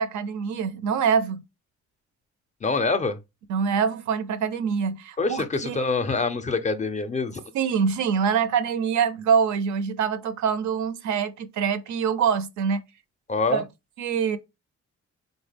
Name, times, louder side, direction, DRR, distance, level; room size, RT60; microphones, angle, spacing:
voice 1, 0.0-1.4 3.5-5.8 7.5-12.8 13.5-13.6 14.0-14.4, right 6 dB, 70° right, 0.5 m, -25 dB
voice 2, 2.6-3.2 5.2-7.4 13.3-13.6, left 4 dB, 25° left, 0.4 m, -25 dB
3.5 x 2.1 x 3.3 m
cardioid pair, 90°, 30 cm